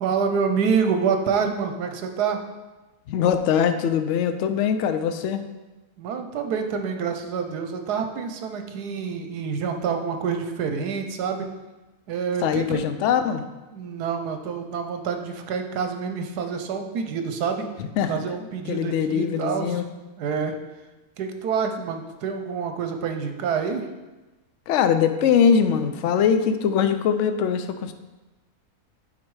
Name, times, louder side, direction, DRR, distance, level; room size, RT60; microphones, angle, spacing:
voice 1, 0.0-2.4 6.0-11.5 12.1-12.9 13.7-17.7 18.1-19.8 20.2-20.5 21.2-23.9, right 6 dB, 80° right, 6 dB, 1.3 m, -27 dB
voice 2, 3.1-5.4 12.4-13.4 17.8-18.1 18.7-19.8 24.7-27.9, left 7 dB, 65° left, 9 dB, 0.7 m, -22 dB
8.5 x 4.2 x 4.7 m, 1.1 s
omnidirectional pair, 1.7 m